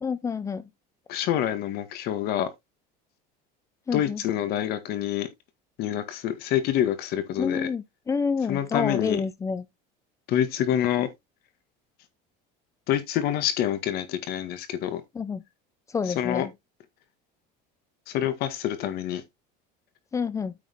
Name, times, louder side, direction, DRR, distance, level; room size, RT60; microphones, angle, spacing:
voice 1, 0.0-0.7 3.9-4.2 7.4-9.6 15.1-15.4 15.9-16.5 20.1-20.5, left 5 dB, 15° left, 0.6 m, -28 dB
voice 2, 1.1-2.5 3.9-5.3 5.8-7.7 8.5-9.2 10.3-11.1 12.9-15.0 16.1-16.5 18.1-19.2, left 11 dB, 50° left, 1.8 m, -27 dB
8.6 x 6.4 x 3.6 m
cardioid pair, 165°, 20 cm